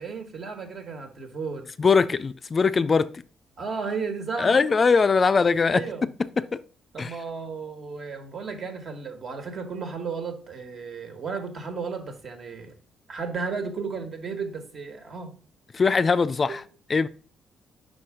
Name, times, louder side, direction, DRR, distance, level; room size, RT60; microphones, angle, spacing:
voice 1, 0.0-1.7 3.6-4.5 5.7-6.0 6.9-12.7 13.1-15.4 16.5-16.6, right 5 dB, 55° right, 1.5 m, -34 dB
voice 2, 1.8-3.2 4.4-6.6 7.0-7.2 15.7-16.6 16.9-17.1, left 5 dB, 35° left, 0.3 m, -22 dB
5.6 x 4.4 x 4.8 m
cardioid pair, 90°, 0 cm